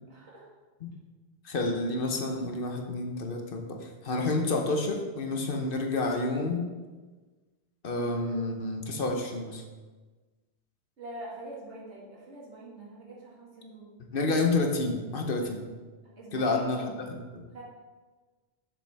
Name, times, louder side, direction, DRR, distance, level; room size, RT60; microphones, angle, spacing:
voice 1, 0.1-0.5 11.0-13.9 16.2-17.0 17.5-17.6, right 1 dB, 90° right, -5 dB, 2.2 m, -44 dB
voice 2, 1.4-6.7 7.8-9.6 14.1-15.7 16.3-17.4, left 2 dB, 55° left, 3 dB, 1.0 m, -29 dB
7.4 x 6.8 x 3.4 m, 1.3 s
omnidirectional pair, 1.1 m